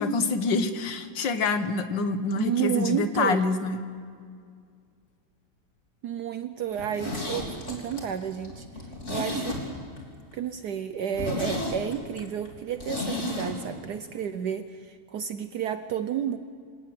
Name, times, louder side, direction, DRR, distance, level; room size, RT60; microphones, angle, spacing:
voice 1, 0.0-3.8, left 4 dB, 70° left, 10 dB, 1.9 m, -26 dB
voice 2, 2.4-3.4 6.0-8.7 9.1-9.6 10.3-16.4, right 9 dB, 65° right, 10 dB, 1.3 m, -31 dB
Zipper (clothing), 6.7-10.0 10.3-10.4 10.8-10.9 11.1-13.5 13.8-13.9, left 1 dB, 35° left, 3.8 m, -33 dB
26.0 x 18.0 x 7.8 m, 2.1 s
omnidirectional pair, 2.1 m